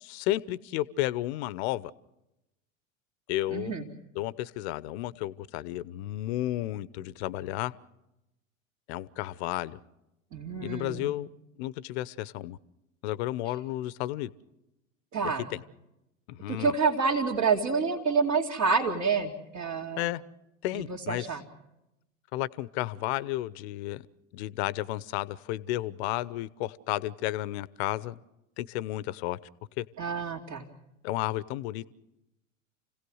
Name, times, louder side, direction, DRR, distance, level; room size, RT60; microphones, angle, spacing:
voice 1, 0.0-1.9 3.3-3.7 4.1-7.7 8.9-9.8 10.6-11.3 11.6-12.6 13.0-14.3 15.2-15.6 16.3-16.7 19.9-20.2 20.6-21.2 22.3-24.1 24.3-28.2 28.6-29.4 29.8-29.9 31.0-31.8, left 15 dB, 55° left, 19 dB, 0.9 m, -32 dB
voice 2, 3.5-3.9 10.3-11.1 15.1-15.5 16.5-20.1 20.7-21.4 30.0-30.6, right 5 dB, 45° right, -4 dB, 2.6 m, -28 dB
29.5 x 17.0 x 6.4 m, 0.92 s
figure-of-eight pair, 80°, 39 cm